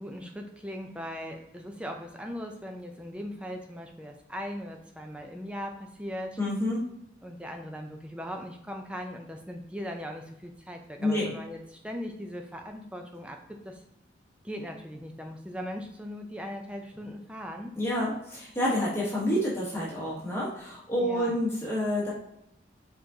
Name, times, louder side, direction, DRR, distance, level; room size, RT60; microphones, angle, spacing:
voice 1, 0.0-6.4 7.2-13.8 14.4-17.7 21.0-21.4, equal, 5° right, 3 dB, 0.5 m, -39 dB
voice 2, 6.4-6.8 11.0-11.3 17.7-22.1, left 1 dB, 15° left, -6 dB, 1.2 m, -28 dB
4.9 x 3.7 x 2.8 m, 0.79 s
head